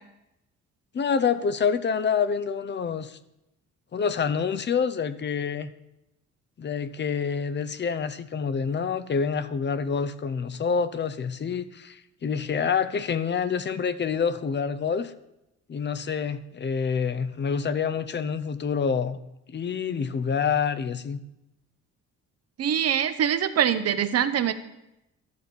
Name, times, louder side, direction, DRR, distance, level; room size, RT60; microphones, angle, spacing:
voice 1, 0.9-3.2 3.9-5.7 6.6-15.1 15.7-19.2 19.5-21.2, left 6 dB, 35° left, 14 dB, 0.7 m, -27 dB
voice 2, 22.6-24.5, right 9 dB, 55° right, 11 dB, 0.8 m, -23 dB
12.0 x 4.4 x 6.9 m, 0.89 s
cardioid pair, 90°, 30 cm